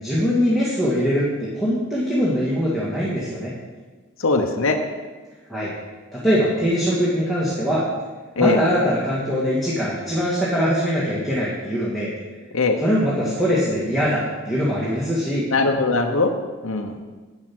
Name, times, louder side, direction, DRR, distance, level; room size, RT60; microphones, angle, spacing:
voice 1, 0.0-3.5 5.5-5.7 6.1-7.9 8.4-12.1 12.8-15.5, equal, ahead, -8 dB, 2.0 m, -22 dB
voice 2, 4.2-4.8 8.4-8.6 12.5-12.8 15.5-16.3 16.6-16.9, left 3 dB, 65° left, 3 dB, 0.9 m, -20 dB
11.0 x 8.6 x 6.1 m, 1.3 s
head